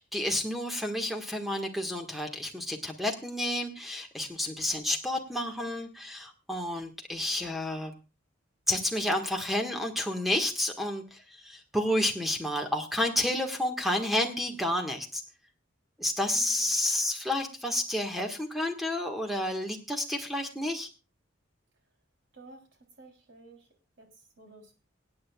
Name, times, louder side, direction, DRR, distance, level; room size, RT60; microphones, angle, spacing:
voice 1, 0.0-7.9 8.7-15.2 16.0-20.9, left 1 dB, ahead, 3 dB, 1.5 m, -30 dB
voice 2, 16.3-16.8 22.3-22.6 23.0-23.7 24.0-24.1 24.4-24.8, right 2 dB, 60° right, 3 dB, 3.2 m, -52 dB
25.0 x 8.7 x 2.3 m, 0.30 s
head